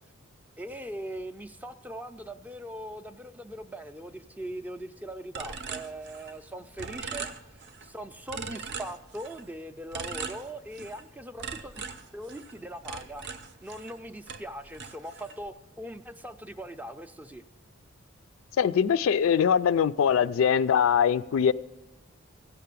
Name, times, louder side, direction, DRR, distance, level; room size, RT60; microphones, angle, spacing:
voice 1, 0.6-7.3 7.8-11.8 12.1-13.2 13.6-17.4, right 1 dB, 10° right, 9 dB, 0.4 m, -40 dB
sound 1, 5.3-6.5 6.8-7.9 8.3-9.5 9.9-11.1 11.4-14.0 14.3-15.5, right 5 dB, 55° right, 0.6 m, -40 dB
voice 2, 18.6-21.5, left 7 dB, 75° left, 15 dB, 0.3 m, -22 dB
16.0 x 5.8 x 6.7 m, 1.0 s
head